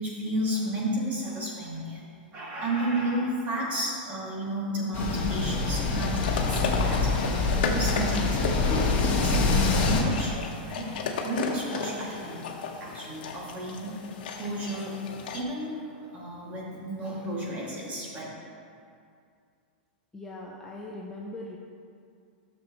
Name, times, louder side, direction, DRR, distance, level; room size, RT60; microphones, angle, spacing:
voice 1, 0.0-2.0 2.3-10.3 10.6-10.9 11.2-12.5 12.8-14.0 14.4-15.0 15.3-18.3, right 1 dB, 25° right, -5 dB, 2.2 m, -32 dB
sound 1, 4.9-10.0, left 3 dB, 35° left, 1.4 m, -25 dB
sound 2, 6.0-15.4, left 5 dB, 65° left, 1.0 m, -34 dB
voice 2, 20.1-21.6, left 2 dB, 10° left, -3 dB, 0.7 m, -40 dB
12.0 x 6.7 x 3.0 m, 2.3 s
hypercardioid pair, 145°, 5 cm